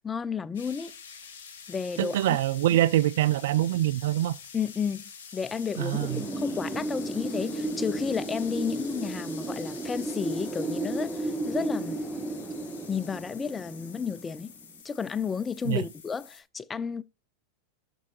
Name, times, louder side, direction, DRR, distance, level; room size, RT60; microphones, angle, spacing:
voice 1, 0.0-0.9 1.7-2.4 4.5-5.0 5.3-12.0 12.9-14.5 14.8-17.0, left 6 dB, 20° left, 0.4 m, -32 dB
sound 1, 0.5-16.4, left 6 dB, 70° left, 2.0 m, -47 dB
voice 2, 2.0-4.3 5.8-6.2 15.6-15.8, right 14 dB, 65° right, 0.4 m, -24 dB
Wind, 5.9-14.6, right 2 dB, 5° right, 1.1 m, -34 dB
10.0 x 6.2 x 2.8 m
hypercardioid pair, 95°, 0 cm